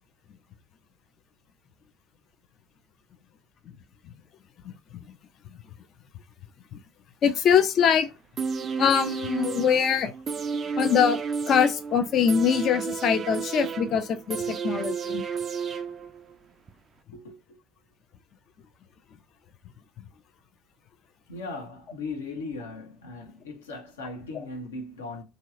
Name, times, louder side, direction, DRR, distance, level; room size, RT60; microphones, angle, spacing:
voice 1, 4.6-5.0 5.5-5.6 6.7-6.8 7.2-8.1 8.8-10.1 10.8-11.2 11.5-15.2 24.3-24.4, left 7 dB, 45° left, 0.5 m, -23 dB
sound 1, 8.4-16.3 16.7-16.8, right 5 dB, 35° right, 0.4 m, -31 dB
voice 2, 17.1-17.6 21.3-25.2, left 3 dB, 75° left, 0.9 m, -38 dB
3.0 x 2.8 x 2.4 m
figure-of-eight pair, 65°, 0 cm